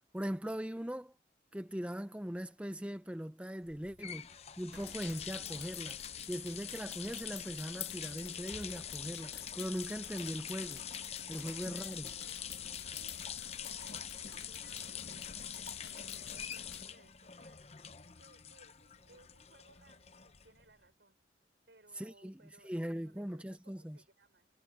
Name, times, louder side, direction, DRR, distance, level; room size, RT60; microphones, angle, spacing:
voice 1, 0.1-1.1 1.5-6.0 6.3-10.8 11.3-12.1 21.9-24.0, equal, 5° right, 0.6 m, -40 dB
sound 1, 3.7-20.7, left 8 dB, 35° left, 0.8 m, -45 dB
sound 2, 4.7-16.8, left 7 dB, 80° left, 1.5 m, -50 dB
voice 2, 11.5-12.5 12.9-17.8 18.2-21.2 21.7-24.5, right 2 dB, 75° right, 4.7 m, -64 dB
head